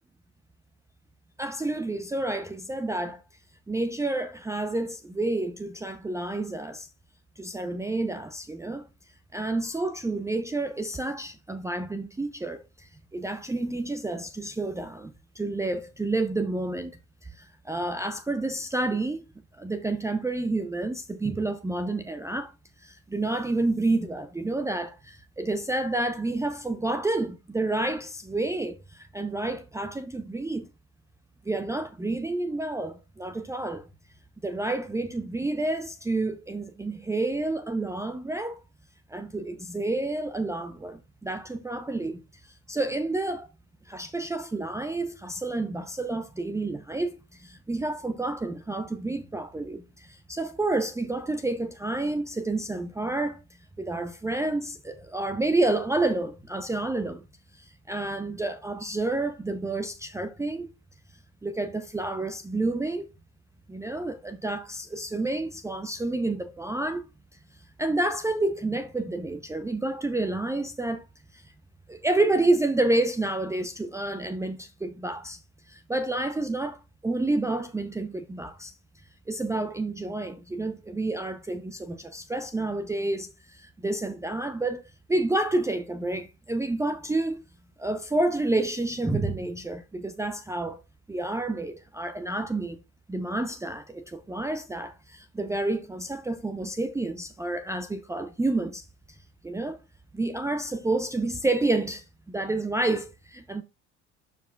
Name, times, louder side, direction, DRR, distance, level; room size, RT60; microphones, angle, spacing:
voice 1, 1.4-3.2 3.7-6.9 7.4-8.9 9.3-16.9 17.2-19.2 19.6-22.5 22.8-30.7 31.4-33.9 34.4-38.6 39.1-43.5 43.9-53.4 53.8-57.2 57.5-60.7 61.4-63.1 63.7-67.1 67.8-71.1 71.3-71.5 71.9-78.8 79.3-87.4 87.8-90.8 91.1-92.8 93.1-99.8 100.1-103.6, right 2 dB, 10° right, 0.6 m, -29 dB
12.0 x 4.9 x 2.3 m
hypercardioid pair, 60°, 33 cm